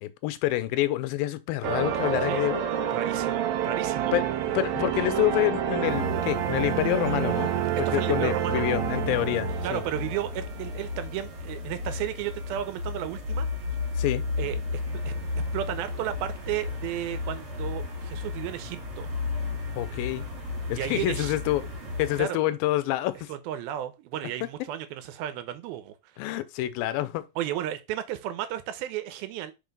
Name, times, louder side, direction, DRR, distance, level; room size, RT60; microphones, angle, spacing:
voice 1, 0.0-2.6 4.1-4.3 4.5-7.5 7.8-9.8 14.0-14.3 19.7-20.3 20.7-21.7 22.0-23.3 26.2-27.3, left 15 dB, 85° left, 2.4 m, -27 dB
sound 1, 1.6-10.8, right 10 dB, 70° right, 1.8 m, -28 dB
voice 2, 2.9-4.1 7.9-8.6 9.6-13.5 14.4-15.2 15.5-19.1 20.7-21.4 22.2-22.4 23.3-25.9 27.4-29.5, right 12 dB, 85° right, 2.7 m, -33 dB
sound 2, 5.8-22.2, left 3 dB, 45° right, 2.8 m, -34 dB
5.5 x 4.3 x 5.2 m
omnidirectional pair, 4.2 m